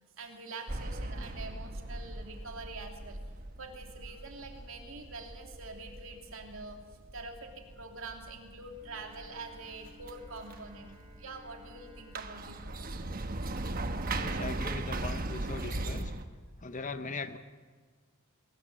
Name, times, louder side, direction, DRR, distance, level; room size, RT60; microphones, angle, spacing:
voice 1, 0.2-3.2 3.6-6.8 7.1-13.0, right 3 dB, 65° right, 3 dB, 2.9 m, -45 dB
sound 1, 0.7-16.3, right 2 dB, 40° right, 1.1 m, -39 dB
Bowed string instrument, 8.7-14.2, right 1 dB, 20° right, 6.6 m, -60 dB
voice 2, 14.2-16.1 16.6-17.4, left 3 dB, 35° left, 11 dB, 0.8 m, -40 dB
21.5 x 19.5 x 7.6 m, 1.5 s
head